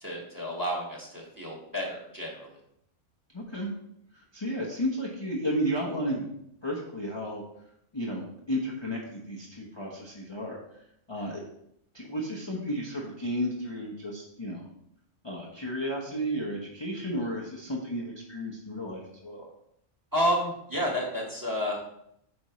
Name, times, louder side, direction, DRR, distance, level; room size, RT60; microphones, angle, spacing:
voice 1, 0.0-2.6 11.1-11.3 20.1-21.8, equal, 15° right, -2 dB, 1.7 m, -30 dB
voice 2, 3.3-3.7 4.1-6.3 6.6-7.4 7.9-10.8 11.1-11.4 11.9-14.7 15.2-19.5, equal, 25° left, -4 dB, 1.0 m, -33 dB
9.4 x 5.3 x 3.1 m, 0.74 s
omnidirectional pair, 1.3 m